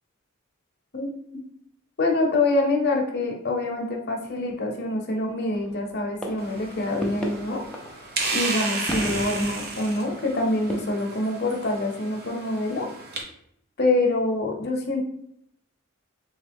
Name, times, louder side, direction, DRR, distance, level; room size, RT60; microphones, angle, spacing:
voice 1, 2.0-7.6 8.3-12.9 13.8-15.0, left 2 dB, 50° left, 1 dB, 0.7 m, -25 dB
sound 1, 5.5-6.0 6.2-8.4 8.9-10.7, equal, 5° left, 0.5 m, -35 dB
sound 2, 6.4-13.2, right 3 dB, 50° right, 0.7 m, -33 dB
3.4 x 3.1 x 3.4 m, 0.73 s
head